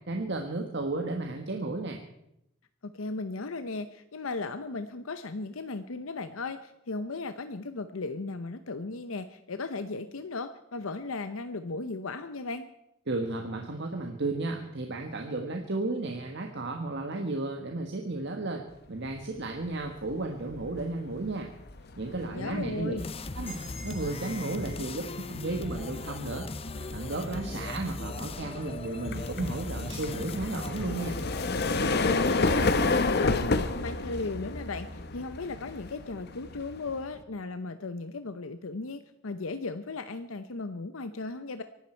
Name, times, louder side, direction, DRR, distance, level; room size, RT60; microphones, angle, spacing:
voice 1, 0.1-2.0 13.1-18.6 18.9-21.5 22.0-22.9 23.3-23.6 23.8-26.5 26.9-31.2, right 2 dB, 60° right, 3 dB, 1.5 m, -33 dB
voice 2, 2.8-12.7 22.3-23.1 31.8-41.6, left 3 dB, 85° left, 10 dB, 0.8 m, -36 dB
sound 1, 19.8-20.1 20.5-37.2, left 3 dB, 50° left, 1.0 m, -31 dB
sound 2, 23.0-32.8, left 3 dB, 30° left, 0.6 m, -39 dB
sound 3, 23.4-27.3, equal, 10° left, 2.6 m, -51 dB
24.0 x 12.5 x 4.5 m, 0.81 s
head